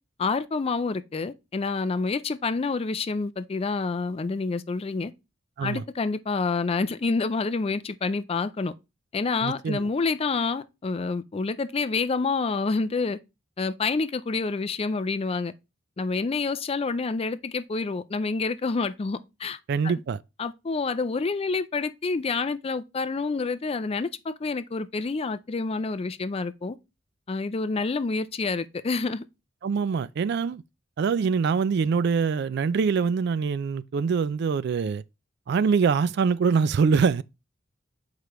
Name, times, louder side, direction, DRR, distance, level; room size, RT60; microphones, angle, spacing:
voice 1, 0.2-5.1 5.6-8.7 9.1-13.2 13.6-15.5 16.0-19.6 19.8-19.9 20.4-26.8 27.3-29.2, left 4 dB, 30° left, 0.4 m, -28 dB
voice 2, 9.4-9.8 19.7-20.2 29.6-30.6 31.0-35.0 35.5-37.2, right 5 dB, 55° right, 0.3 m, -24 dB
6.7 x 4.8 x 3.0 m
head